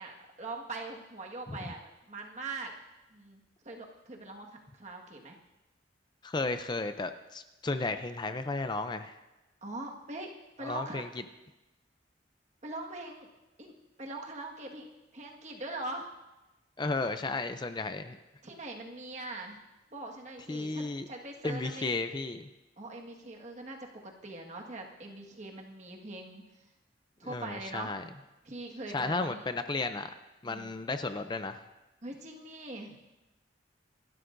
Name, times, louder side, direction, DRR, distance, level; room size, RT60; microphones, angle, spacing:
voice 1, 0.0-2.7 3.1-4.5 4.7-5.4 9.6-10.3 10.6-11.0 12.6-13.3 13.6-13.7 14.0-14.9 15.1-16.1 18.4-19.6 19.9-21.9 22.8-26.6 27.2-27.9 28.4-29.4 30.4-30.9 32.0-33.0, right 2 dB, 40° right, 0 dB, 1.7 m, -42 dB
voice 2, 6.2-9.2 10.6-11.1 16.8-18.2 20.5-21.1 21.4-22.5 27.3-28.0 28.9-30.1 30.4-31.6, left 3 dB, 25° left, 9 dB, 0.5 m, -33 dB
27.0 x 12.5 x 2.6 m, 1.0 s
head